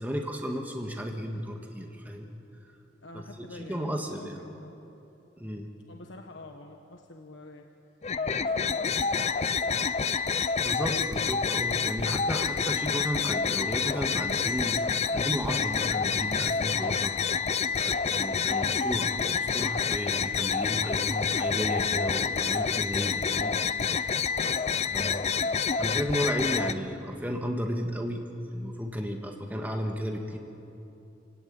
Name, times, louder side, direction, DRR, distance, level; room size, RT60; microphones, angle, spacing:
voice 1, 0.0-2.3 3.1-4.4 5.4-5.7 10.6-17.2 17.8-23.6 24.9-25.3 25.8-30.4, equal, 10° right, 2 dB, 1.6 m, -33 dB
voice 2, 3.0-4.8 5.9-7.7 8.1-10.0 11.9-12.4 17.7-18.0 20.8-21.3 22.4-22.9 24.4-25.6, left 2 dB, 85° left, 3 dB, 1.4 m, -48 dB
sound 1, 8.0-26.7, left 6 dB, 35° left, 0.6 m, -28 dB
28.5 x 17.5 x 8.9 m, 3.0 s
head